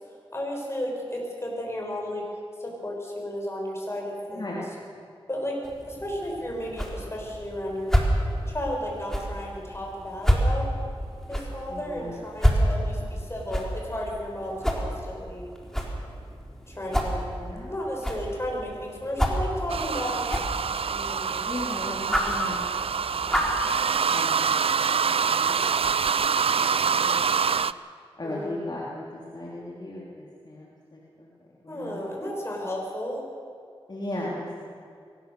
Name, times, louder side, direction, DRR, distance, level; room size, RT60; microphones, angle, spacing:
voice 1, 0.3-2.2 2.6-4.6 5.3-5.6 5.8-8.0 8.5-10.7 11.3-15.5 16.7-17.3 17.7-20.3 20.9-21.5 28.2-28.6 31.7-33.2, left 1 dB, 25° left, -2 dB, 6.6 m, -33 dB
voice 2, 4.3-4.7 11.7-12.1 17.4-17.8 21.4-22.8 23.2-25.9 26.2-27.7 28.2-31.3 31.6-32.0 33.9-34.5, left 1 dB, 45° left, -5 dB, 3.4 m, -38 dB
sound 1, 5.6-23.6, equal, 5° left, 3.8 m, -29 dB
sound 2, 19.7-27.7, right 6 dB, 70° right, 0.4 m, -25 dB
22.0 x 19.0 x 6.9 m, 2.3 s
wide cardioid pair, 70°, 10 cm